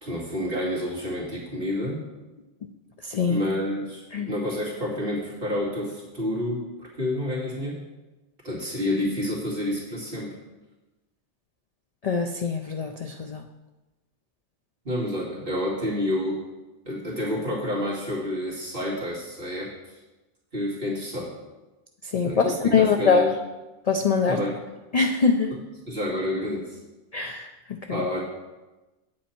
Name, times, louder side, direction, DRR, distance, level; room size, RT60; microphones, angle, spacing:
voice 1, 0.0-2.1 3.2-7.8 8.4-10.3 14.8-16.4 16.9-20.0 20.5-21.3 22.2-23.3 24.3-24.6 25.5-25.6 25.9-26.8 27.9-28.2, left 1 dB, 50° right, -6 dB, 2.4 m, -29 dB
voice 2, 3.0-3.4 4.1-4.3 12.0-13.4 22.1-23.3 23.9-24.4 24.9-25.5 27.1-28.0, left 5 dB, 55° left, 5 dB, 0.4 m, -23 dB
9.3 x 7.7 x 4.4 m, 1.1 s
omnidirectional pair, 1.2 m